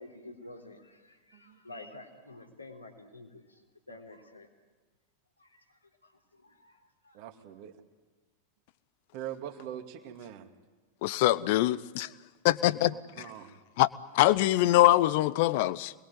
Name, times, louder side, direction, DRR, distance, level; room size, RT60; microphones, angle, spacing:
voice 1, 0.0-3.6 3.9-4.5 5.4-7.2, left 2 dB, 80° left, 1 dB, 3.8 m, -50 dB
voice 2, 1.3-2.1 3.9-4.0 7.1-7.8 9.1-10.5 12.9-13.6, right 10 dB, 45° right, 5 dB, 2.4 m, -43 dB
voice 3, 11.0-12.1 12.4-12.9 13.8-13.9 14.1-15.9, left 16 dB, 50° left, 18 dB, 0.8 m, -23 dB
27.0 x 21.0 x 9.5 m, 1.3 s
figure-of-eight pair, 90°, 0 cm